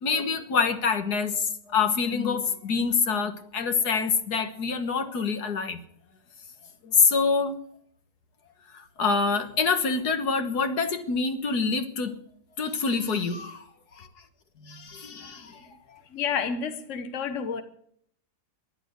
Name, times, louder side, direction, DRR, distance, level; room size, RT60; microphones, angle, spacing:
voice 1, 0.0-5.8 6.8-7.6 8.7-12.2 12.6-13.7 14.0-14.1 14.6-16.0, left 5 dB, 75° left, 2.0 m, -26 dB
voice 2, 16.1-17.6, left 6 dB, 50° left, 1.5 m, -30 dB
14.0 x 11.5 x 8.1 m
omnidirectional pair, 1.7 m